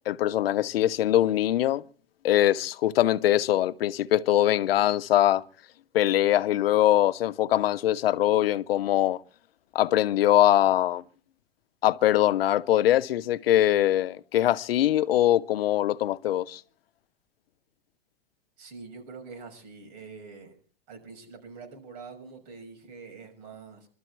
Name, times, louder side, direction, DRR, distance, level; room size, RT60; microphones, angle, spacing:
voice 1, 0.1-1.8 2.2-5.4 5.9-9.2 9.7-11.0 11.8-16.6, left 13 dB, 80° left, 0.8 m, -22 dB
voice 2, 18.6-20.5 20.9-23.9, right 4 dB, 50° right, 6.2 m, -45 dB
23.0 x 13.0 x 4.6 m
hypercardioid pair, 135°, 29 cm